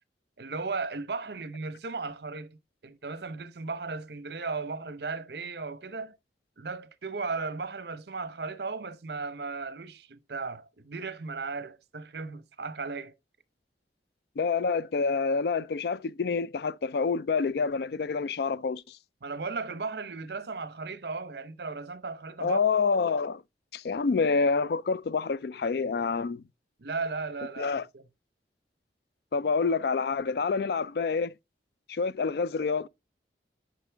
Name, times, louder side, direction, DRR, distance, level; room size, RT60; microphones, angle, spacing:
voice 1, 0.4-6.2 6.6-13.1 19.2-22.6 26.8-28.0, right 4 dB, 65° right, 0.8 m, -36 dB
voice 2, 14.4-19.0 22.4-23.4 23.7-26.4 27.6-27.8 29.3-31.3 31.9-32.9, left 5 dB, 60° left, 0.4 m, -27 dB
10.5 x 5.1 x 3.4 m
head